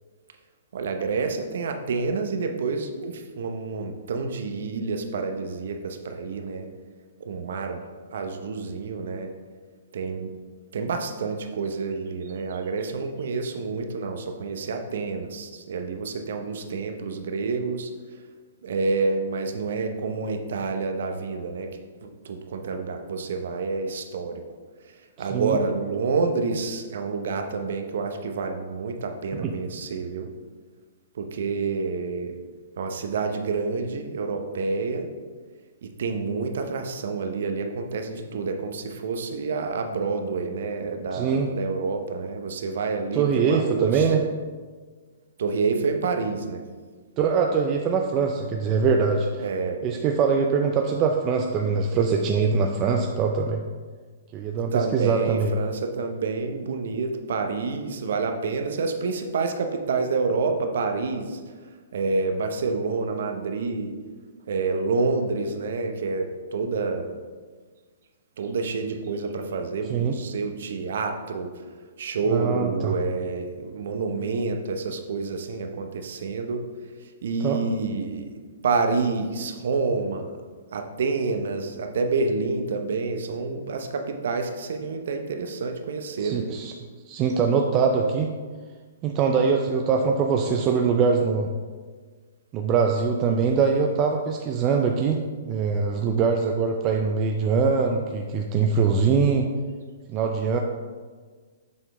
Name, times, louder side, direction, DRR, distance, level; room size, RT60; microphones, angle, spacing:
voice 1, 0.7-6.7 7.2-7.8 8.1-9.3 9.9-10.3 10.7-17.9 18.6-21.7 22.0-24.4 24.8-30.3 31.1-32.3 32.8-35.1 35.8-44.1 45.4-46.6 49.4-49.8 54.7-61.4 61.9-64.0 64.5-67.2 68.4-71.6 72.0-76.6 77.0-80.4 80.7-86.5, right 4 dB, 70° right, 6 dB, 0.7 m, -28 dB
voice 2, 41.1-41.5 43.1-44.2 47.2-49.4 49.8-53.6 54.3-55.5 69.9-70.1 72.3-72.9 77.4-77.6 86.2-86.7 87.1-88.3 89.0-91.5 92.5-99.5 100.1-100.6, right 5 dB, 30° right, 2 dB, 0.4 m, -23 dB
7.2 x 3.9 x 3.3 m, 1.5 s
hypercardioid pair, 140°, 0 cm